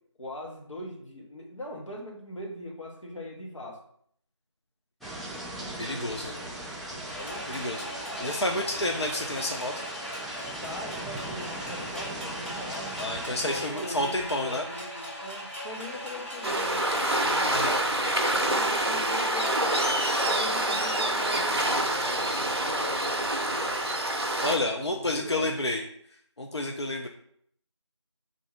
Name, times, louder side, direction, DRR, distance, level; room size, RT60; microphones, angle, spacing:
voice 1, 0.2-3.8 5.5-8.7 10.6-12.9 13.4-17.5 18.1-23.9 24.9-25.8, left 1 dB, 85° left, -1 dB, 1.2 m, -41 dB
sound 1, 5.0-13.7, right 1 dB, ahead, 0.3 m, -39 dB
voice 2, 5.8-6.3 7.5-7.8 8.2-9.9 13.0-14.6 17.5-17.8 24.4-25.8 26.4-27.1, left 1 dB, 60° left, 2 dB, 0.4 m, -30 dB
sound 2, 7.1-17.8, equal, 25° left, 0.8 m, -39 dB
Waves surf, 16.4-24.6, right 1 dB, 55° right, 0.6 m, -26 dB
3.6 x 2.6 x 3.3 m, 0.66 s
figure-of-eight pair, 175°, 16 cm